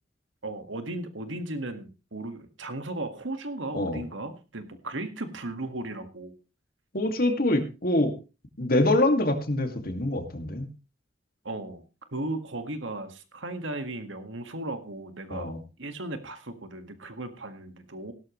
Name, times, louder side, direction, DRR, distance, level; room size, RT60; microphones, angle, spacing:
voice 1, 0.4-6.3 11.4-11.8 12.1-15.5 15.8-18.1, right 2 dB, 90° right, 8 dB, 1.9 m, -36 dB
voice 2, 6.9-8.2 8.6-10.7 15.3-15.6, left 1 dB, 50° left, 6 dB, 2.3 m, -25 dB
17.0 x 12.0 x 3.2 m, 0.30 s
head